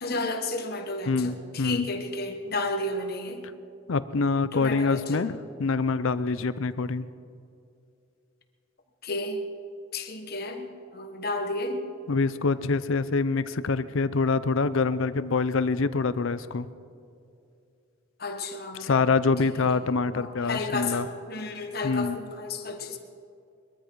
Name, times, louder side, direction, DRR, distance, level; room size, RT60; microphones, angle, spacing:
voice 1, 0.0-3.5 4.5-5.4 9.0-9.4 9.9-11.9 18.2-19.1 19.4-19.7 20.1-23.0, left 2 dB, 45° left, 6 dB, 1.3 m, -32 dB
voice 2, 1.1-1.9 3.9-7.1 12.1-16.7 18.8-21.1 21.8-22.2, left 4 dB, 75° left, 14 dB, 0.6 m, -25 dB
21.5 x 13.5 x 4.7 m, 2.5 s
head